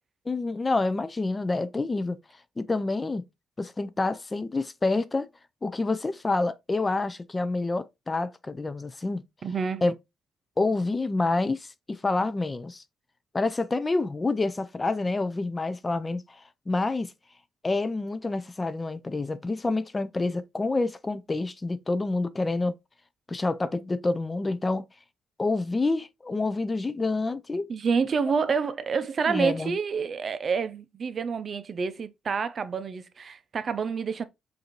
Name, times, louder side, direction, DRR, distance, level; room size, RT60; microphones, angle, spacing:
voice 1, 0.3-2.2 2.6-3.2 3.6-5.3 5.6-9.2 9.8-9.9 10.6-12.8 13.3-17.1 17.6-22.8 23.3-24.8 25.4-27.7 29.3-29.7, left 3 dB, 25° left, 0.4 m, -28 dB
voice 2, 9.4-9.8 27.7-34.2, right 5 dB, 45° right, 0.5 m, -28 dB
4.9 x 2.6 x 3.0 m
cardioid pair, 90°, 0 cm